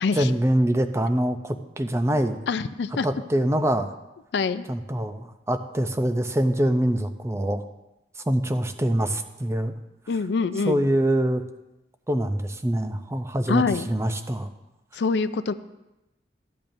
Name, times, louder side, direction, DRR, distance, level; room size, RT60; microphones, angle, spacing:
voice 1, 0.1-2.4 3.0-3.9 4.7-7.6 8.3-9.7 10.7-11.4 12.1-14.5, right 1 dB, 15° right, 8 dB, 0.5 m, -24 dB
voice 2, 2.5-3.1 4.3-4.6 10.1-10.8 13.5-13.9 14.9-15.5, left 4 dB, 75° left, 13 dB, 0.4 m, -25 dB
13.5 x 8.7 x 2.6 m, 0.97 s
head